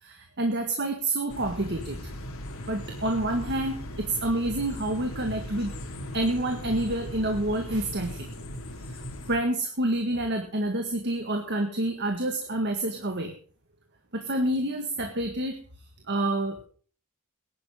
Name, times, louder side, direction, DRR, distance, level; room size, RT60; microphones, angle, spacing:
voice 1, 0.0-2.0 2.7-5.7 6.1-8.3 9.3-13.3 14.1-15.6 16.1-16.6, right 1 dB, 55° right, 4 dB, 1.8 m, -28 dB
sound 1, 1.3-9.4, left 1 dB, 70° left, 2.7 m, -38 dB
19.0 x 11.0 x 3.8 m, 0.42 s
head